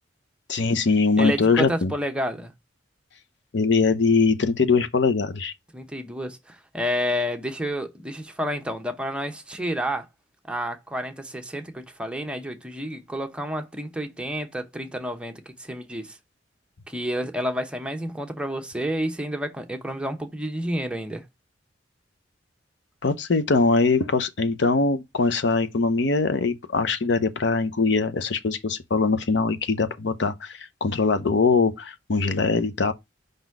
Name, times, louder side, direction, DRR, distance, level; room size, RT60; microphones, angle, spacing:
voice 1, 0.5-1.9 3.5-5.5 23.0-32.9, left 4 dB, 65° left, 0.7 m, -22 dB
voice 2, 1.2-2.5 5.7-10.1 10.5-16.2 16.9-21.2, equal, 5° right, 0.8 m, -30 dB
5.3 x 4.0 x 4.5 m
head